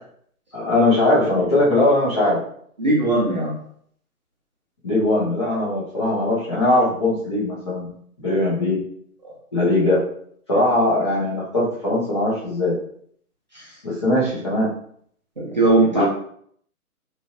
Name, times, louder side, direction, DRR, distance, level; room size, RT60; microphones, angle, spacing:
voice 1, 0.5-2.4 4.8-7.9 8.2-8.8 9.5-10.1 10.5-12.8 13.8-14.7 15.9-16.0, left 1 dB, 20° left, -8 dB, 0.6 m, -20 dB
voice 2, 2.8-3.5 15.4-16.0, right 2 dB, 30° right, -5 dB, 0.5 m, -18 dB
3.1 x 2.4 x 2.4 m, 0.64 s
figure-of-eight pair, 145°, 44 cm